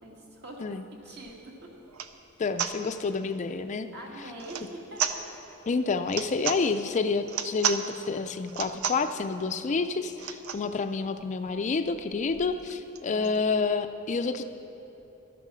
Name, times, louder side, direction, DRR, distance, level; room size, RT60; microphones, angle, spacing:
voice 1, 0.0-0.6 1.0-1.7 3.9-5.0 13.0-13.4, right 1 dB, 55° right, -2 dB, 2.2 m, -43 dB
sound 1, 1.3-1.4 1.9-2.1 2.6-2.8 4.4-4.7 5.0-5.2 6.0-6.6 7.2-7.8 8.4-9.1 10.2-10.7 11.2-11.3 11.5-11.6 11.9-13.4, right 8 dB, 80° right, 0.6 m, -32 dB
voice 2, 2.4-3.9 5.7-14.4, left 4 dB, 35° left, 8 dB, 0.4 m, -29 dB
12.5 x 10.5 x 6.3 m, 2.9 s
head